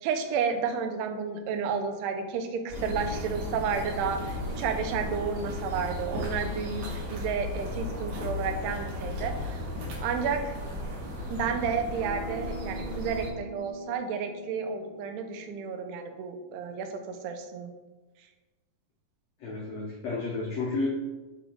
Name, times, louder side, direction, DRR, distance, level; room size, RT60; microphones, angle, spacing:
voice 1, 0.0-9.6 10.0-10.6 11.3-17.7, right 6 dB, 90° right, 6 dB, 2.8 m, -31 dB
sound 1, 2.7-13.3, left 1 dB, 65° right, 3.2 m, -35 dB
Acoustic guitar, 11.9-17.1, right 2 dB, 35° left, 1.2 m, -45 dB
voice 2, 19.4-20.9, left 3 dB, 80° left, -4 dB, 1.5 m, -31 dB
8.9 x 4.1 x 4.6 m, 1.2 s
omnidirectional pair, 4.6 m